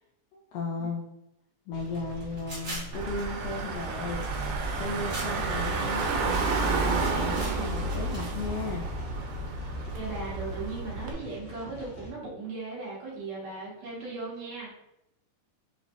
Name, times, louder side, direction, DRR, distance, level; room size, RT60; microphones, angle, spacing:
voice 1, 0.3-1.0 1.7-4.2 4.8-8.8, left 3 dB, 85° left, -1 dB, 1.7 m, -35 dB
sound 1, 1.7-12.1, left 1 dB, 65° left, 2.1 m, -45 dB
sound 2, 1.8-8.3, right 2 dB, 45° right, 1.3 m, -42 dB
Car / Engine, 2.9-11.1, right 3 dB, 90° right, 2.4 m, -30 dB
voice 2, 9.9-14.7, right 3 dB, 65° right, -6 dB, 2.0 m, -37 dB
5.2 x 3.0 x 2.5 m, 0.83 s
omnidirectional pair, 3.9 m